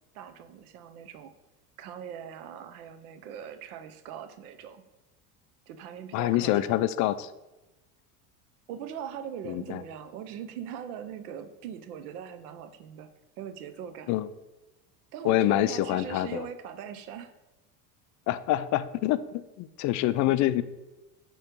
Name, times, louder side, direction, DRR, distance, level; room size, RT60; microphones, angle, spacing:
voice 1, 0.1-1.3 1.8-4.8 5.7-6.8 8.7-13.1 13.4-14.1 15.1-17.3 20.2-20.3, right 8 dB, 75° right, 9 dB, 0.8 m, -41 dB
voice 2, 6.1-7.3 9.5-9.8 14.1-14.3 15.2-16.5 18.3-20.6, left 14 dB, 45° left, 15 dB, 0.4 m, -26 dB
8.5 x 3.1 x 5.2 m, 1.0 s
hypercardioid pair, 90°, 44 cm